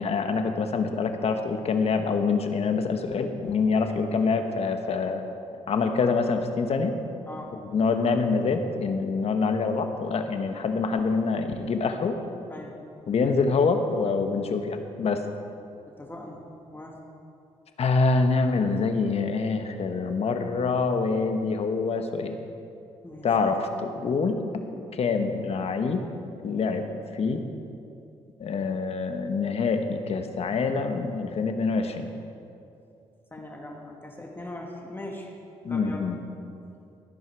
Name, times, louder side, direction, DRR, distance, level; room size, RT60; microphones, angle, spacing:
voice 1, 0.0-5.2 5.7-7.0 7.6-12.2 13.1-15.3 17.8-22.4 23.2-24.6 24.9-26.0 26.4-27.4 28.4-32.1 35.6-36.2, left 4 dB, 55° left, 6 dB, 1.3 m, -25 dB
voice 2, 15.9-16.4 16.7-17.0 23.0-23.3 33.3-35.4 35.7-36.1, left 1 dB, 15° left, 0 dB, 1.9 m, -40 dB
14.5 x 10.5 x 4.7 m, 2.5 s
cardioid pair, 75°, 12 cm